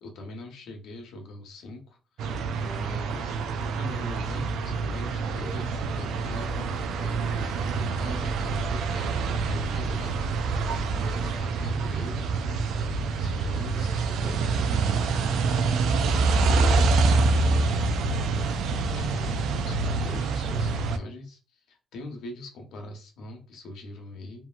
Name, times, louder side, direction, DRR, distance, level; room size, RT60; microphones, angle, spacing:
voice 1, 0.0-17.9 18.8-24.5, left 1 dB, 85° left, 2 dB, 0.8 m, -42 dB
sound 1, 2.2-21.0, right 4 dB, 80° right, 0.3 m, -26 dB
2.9 x 2.5 x 2.3 m, 0.34 s
cardioid pair, 90°, 0 cm